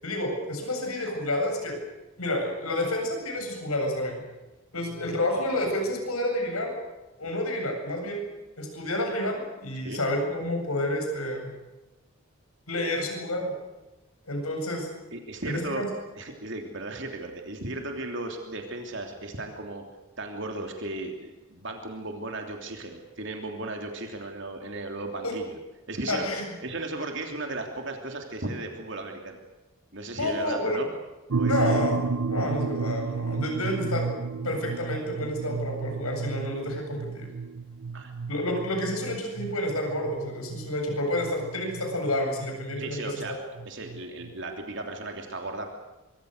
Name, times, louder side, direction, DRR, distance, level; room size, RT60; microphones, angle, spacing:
voice 1, 0.0-1.8 2.2-4.2 4.7-6.7 7.2-8.2 8.6-11.5 12.7-13.5 14.3-14.9 15.4-15.9 25.2-25.3 26.1-26.4 30.2-30.8 31.5-32.0 32.3-34.1 34.4-37.3 38.3-43.1, left 1 dB, 85° left, 3 dB, 8.0 m, -29 dB
voice 2, 15.1-15.9 16.2-19.8 20.2-25.6 25.9-26.3 26.6-29.4 29.9-30.9 31.3-31.8 37.9-38.1 42.8-43.3 43.6-45.7, right 2 dB, 55° right, 3 dB, 3.2 m, -36 dB
sound 1, 31.3-44.3, right 4 dB, 75° right, 0.7 m, -32 dB
25.0 x 24.5 x 6.7 m, 1.1 s
head